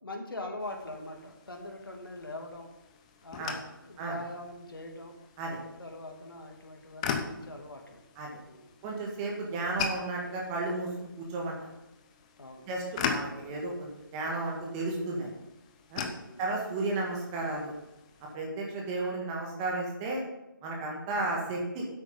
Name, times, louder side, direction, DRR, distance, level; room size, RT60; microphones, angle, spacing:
voice 1, 0.0-2.7 3.2-5.1 5.8-8.0 8.4-8.7 12.4-12.7 16.2-16.4, left 1 dB, 75° left, 2 dB, 2.6 m, -42 dB
sound 1, 0.6-18.4, left 6 dB, 15° left, 0.7 m, -41 dB
voice 2, 8.8-11.5 12.7-15.3 15.9-16.1 16.4-17.7 18.3-20.2 20.6-21.9, right 2 dB, 15° right, -1 dB, 1.8 m, -33 dB
10.0 x 8.1 x 5.5 m, 0.95 s
figure-of-eight pair, 155°, 12 cm